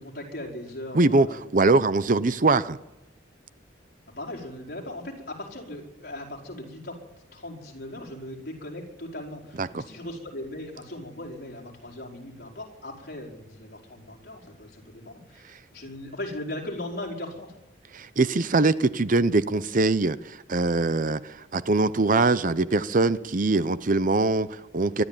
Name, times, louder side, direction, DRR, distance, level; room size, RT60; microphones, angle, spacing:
voice 1, 0.0-1.6 4.2-7.0 7.3-17.5, left 1 dB, 55° left, 0 dB, 4.9 m, -38 dB
voice 2, 0.9-1.3 1.5-2.8 9.6-9.8 17.9-25.0, right 3 dB, 45° right, 14 dB, 0.7 m, -22 dB
23.5 x 12.5 x 9.0 m, 0.93 s
head